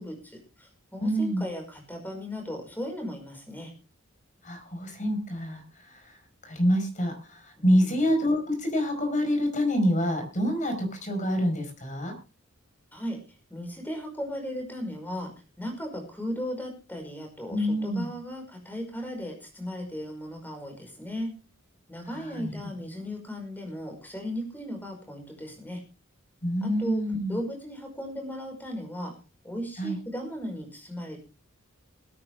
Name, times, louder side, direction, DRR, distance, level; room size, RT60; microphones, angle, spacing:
voice 1, 0.0-3.7 7.6-8.1 12.9-13.2 13.5-15.3 15.6-21.3 21.9-25.8 26.6-27.0 27.3-29.1 29.4-31.2, equal, 10° left, 3 dB, 5.2 m, -36 dB
voice 2, 1.0-1.4 4.4-5.6 5.9-6.2 6.4-12.1 17.5-18.1 22.1-22.5 26.4-27.4 29.8-30.0, equal, 35° left, 5 dB, 4.9 m, -27 dB
20.5 x 9.9 x 3.5 m, 0.30 s
head